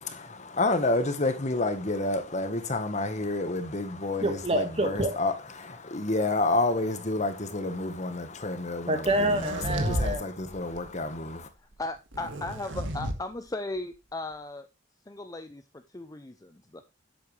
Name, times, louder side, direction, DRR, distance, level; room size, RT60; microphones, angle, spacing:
voice 1, 0.0-9.0 9.7-11.5, left 2 dB, 40° left, 1.4 m, -29 dB
voice 2, 4.2-5.2 8.9-10.2, right 1 dB, 35° right, 1.8 m, -27 dB
sound 1, 9.1-10.2 10.5-10.9 12.1-13.2, right 1 dB, 90° right, 1.7 m, -32 dB
voice 3, 11.8-14.7 15.1-16.8, left 2 dB, 20° left, 0.6 m, -37 dB
11.0 x 7.9 x 3.3 m
head